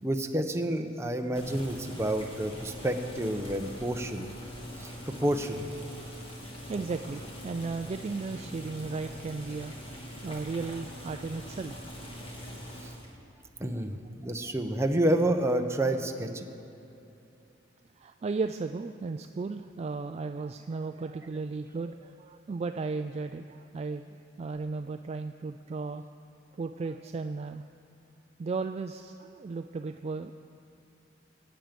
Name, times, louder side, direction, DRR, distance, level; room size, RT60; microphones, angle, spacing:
voice 1, 0.0-4.3 4.8-5.7 12.8-12.9 13.6-16.4, right 1 dB, 15° right, 4 dB, 0.8 m, -29 dB
Boiling, 1.4-13.1, equal, 30° left, 2.0 m, -43 dB
voice 2, 6.7-9.7 10.2-11.9 14.4-14.5 18.0-24.1 24.4-26.0 26.6-27.6 28.4-30.3, right 4 dB, 35° right, 7 dB, 0.3 m, -35 dB
21.5 x 9.0 x 5.2 m, 2.8 s
head